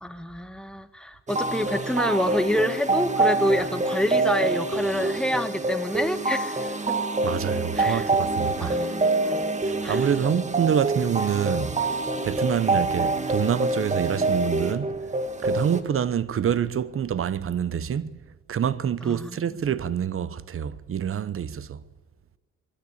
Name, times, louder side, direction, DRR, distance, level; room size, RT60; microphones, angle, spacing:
voice 1, 0.0-7.0 7.8-8.0 8.6-9.5 9.8-10.0 19.0-19.4, left 1 dB, 5° left, 1.6 m, -27 dB
sound 1, 1.3-15.8, right 2 dB, 25° right, 1.8 m, -26 dB
voice 2, 7.2-8.8 9.6-11.8 12.2-14.9 15.4-18.1 18.5-21.8, right 8 dB, 45° right, 0.9 m, -26 dB
22.5 x 14.0 x 8.6 m
cardioid pair, 90°, 30 cm